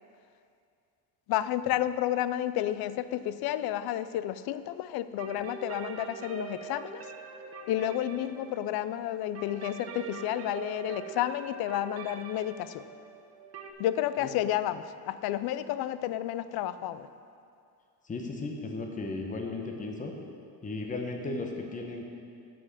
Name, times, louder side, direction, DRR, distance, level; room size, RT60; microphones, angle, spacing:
voice 1, 1.3-7.1 7.7-12.8 13.8-17.1, left 12 dB, 70° left, 14 dB, 0.5 m, -31 dB
sound 1, 5.2-13.7, right 6 dB, 40° right, 0.9 m, -44 dB
voice 2, 18.0-20.1 20.6-22.1, left 3 dB, 20° left, 2 dB, 0.9 m, -35 dB
7.6 x 6.3 x 7.3 m, 2.4 s
cardioid pair, 135°, 39 cm